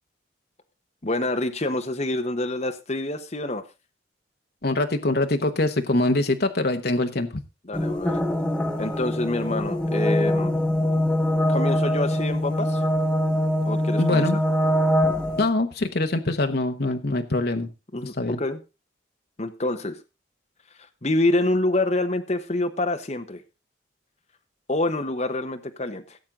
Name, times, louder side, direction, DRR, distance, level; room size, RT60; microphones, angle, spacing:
voice 1, 1.0-3.6 7.6-8.2 8.8-10.5 11.5-12.8 13.6-14.2 17.9-18.6 19.4-20.0 21.0-23.4 24.7-26.2, left 2 dB, 35° left, 6 dB, 1.1 m, -26 dB
voice 2, 4.6-7.3 14.0-14.4 15.4-17.7 18.2-18.4, left 2 dB, 55° left, 6 dB, 1.1 m, -23 dB
sound 1, 7.7-15.5, left 1 dB, 5° left, 1.6 m, -23 dB
17.0 x 7.5 x 3.8 m, 0.29 s
head